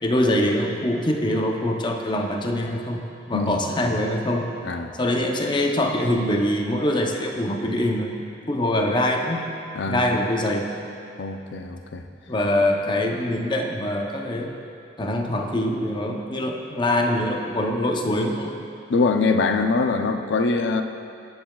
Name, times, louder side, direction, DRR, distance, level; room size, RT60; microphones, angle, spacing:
voice 1, 0.0-3.0 3.3-4.5 5.0-9.5 9.9-10.7 12.3-14.5 15.0-18.6, left 1 dB, 25° left, 2 dB, 0.7 m, -24 dB
voice 2, 3.3-3.9 4.6-4.9 9.8-10.1 11.2-12.0 18.9-20.8, left 4 dB, 70° left, 6 dB, 0.5 m, -23 dB
19.5 x 7.0 x 2.3 m, 2.5 s
head